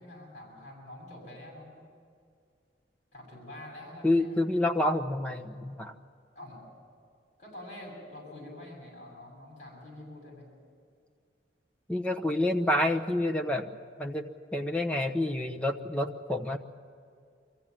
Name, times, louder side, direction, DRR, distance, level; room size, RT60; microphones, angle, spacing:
voice 1, 0.0-1.8 3.1-4.4 6.3-6.6 7.4-10.5, left 1 dB, 45° left, -3 dB, 7.1 m, -46 dB
voice 2, 4.0-5.9 11.9-13.7 14.0-16.6, left 1 dB, 5° left, 2 dB, 0.9 m, -28 dB
24.0 x 15.0 x 9.0 m, 2.2 s
head